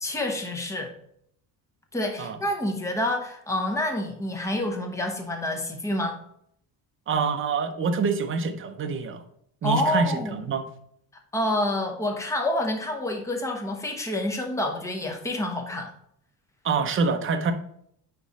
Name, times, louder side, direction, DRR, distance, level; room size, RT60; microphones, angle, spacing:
voice 1, 0.0-0.9 1.9-6.2 9.6-10.4 11.3-15.9, left 1 dB, 5° left, 2 dB, 0.8 m, -28 dB
voice 2, 7.1-9.2 9.6-10.7 16.6-17.5, right 4 dB, 30° right, 6 dB, 0.7 m, -26 dB
9.4 x 3.1 x 4.1 m, 0.69 s
cardioid pair, 170°, 41 cm